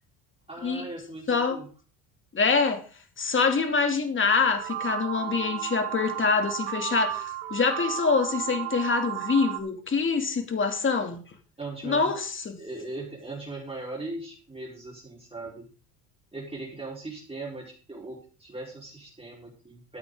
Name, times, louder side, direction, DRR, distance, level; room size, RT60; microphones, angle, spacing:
voice 1, 0.5-1.7 11.6-12.1 12.6-15.7 16.3-20.0, right 2 dB, 15° right, -3 dB, 4.4 m, -39 dB
voice 2, 1.3-1.6 2.3-2.8 3.2-11.2 11.8-12.6, left 4 dB, 30° left, 5 dB, 2.8 m, -25 dB
sound 1, 4.5-9.6, right 13 dB, 65° right, 2.0 m, -33 dB
14.0 x 8.9 x 3.9 m, 0.36 s
supercardioid pair, 75°, 39 cm